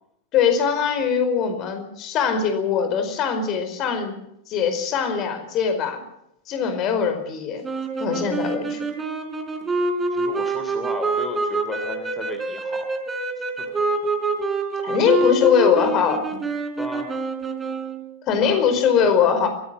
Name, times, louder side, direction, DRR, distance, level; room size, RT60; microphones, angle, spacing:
voice 1, 0.3-4.2 4.5-6.0 6.5-7.6 8.0-8.9 14.8-16.4 18.3-19.5, left 7 dB, 35° left, 7 dB, 4.9 m, -21 dB
sound 1, 7.6-18.1, right 3 dB, 15° right, 3.8 m, -26 dB
voice 2, 10.1-12.9 13.8-13.9 16.8-17.1 18.4-19.3, left 2 dB, 10° left, 6 dB, 3.0 m, -35 dB
22.5 x 17.0 x 7.5 m, 0.79 s
figure-of-eight pair, 90°, 0 cm